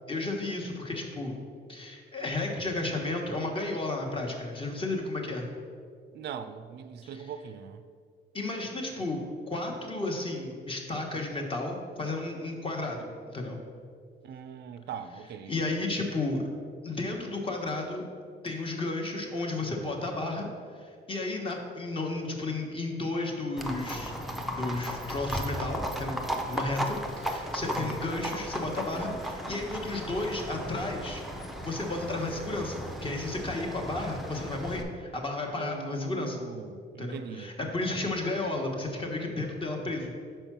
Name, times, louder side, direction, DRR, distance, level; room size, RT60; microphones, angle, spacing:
voice 1, 0.1-1.4 1.7-5.5 7.0-7.3 8.3-9.2 9.5-13.6 15.5-16.4 16.8-18.0 18.4-20.5 20.8-24.1 24.5-36.4 37.0-40.1, left 2 dB, 30° left, 1 dB, 1.0 m, -33 dB
voice 2, 6.1-7.8 14.2-15.6 27.6-28.0 35.6-37.5, right 7 dB, 65° right, 11 dB, 0.4 m, -41 dB
Livestock farm animals working animals, 23.6-34.8, equal, ahead, 0.6 m, -36 dB
5.3 x 4.5 x 5.9 m, 2.2 s
cardioid pair, 110°, 19 cm